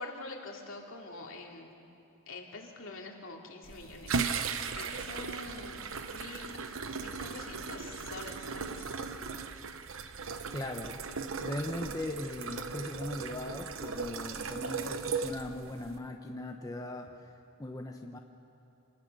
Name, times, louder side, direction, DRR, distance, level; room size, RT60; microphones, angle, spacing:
voice 1, 0.0-1.7 2.3-4.4 4.7-5.8 6.1-6.5 7.0-8.9, left 2 dB, 65° left, 0 dB, 2.9 m, -45 dB
sound 1, 3.6-16.0, right 5 dB, 70° right, 1.0 m, -37 dB
voice 2, 10.5-11.0 11.4-17.3 17.6-18.2, left 1 dB, 15° left, 3 dB, 0.9 m, -39 dB
26.5 x 19.0 x 6.8 m, 3.0 s
head